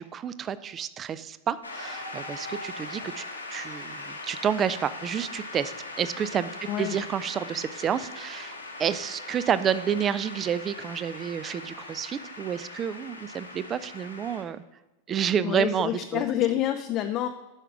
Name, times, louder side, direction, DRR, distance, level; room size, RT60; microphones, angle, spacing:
voice 1, 0.0-6.5 6.8-14.6 15.1-16.2, right 8 dB, 25° right, 15 dB, 0.4 m, -29 dB
Shout / Cheering / Applause, 1.6-14.4, left 2 dB, 80° left, 1.2 m, -40 dB
voice 2, 15.4-17.3, left 12 dB, 35° left, 6 dB, 0.4 m, -27 dB
9.8 x 5.8 x 4.8 m, 1.1 s
figure-of-eight pair, 90°, 0 cm